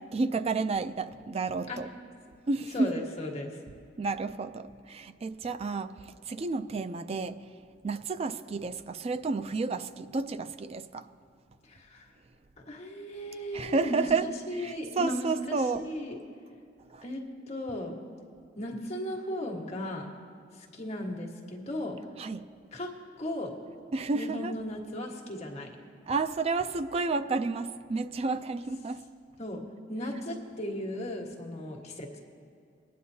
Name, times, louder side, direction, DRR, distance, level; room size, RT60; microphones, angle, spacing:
voice 1, 0.1-1.9 2.5-2.9 4.0-7.4 7.8-11.1 13.5-14.3 14.6-15.8 16.9-17.0 22.2-22.4 23.9-24.5 26.1-29.0, right 3 dB, 35° right, 11 dB, 0.3 m, -31 dB
voice 2, 2.7-3.6 11.6-12.1 12.6-16.2 17.0-18.0 18.5-20.1 20.5-21.9 22.7-22.9 23.2-23.5 24.1-25.7 29.4-29.6 29.9-32.2, left 1 dB, 40° left, -1 dB, 1.4 m, -36 dB
20.5 x 9.4 x 2.8 m, 2.4 s
head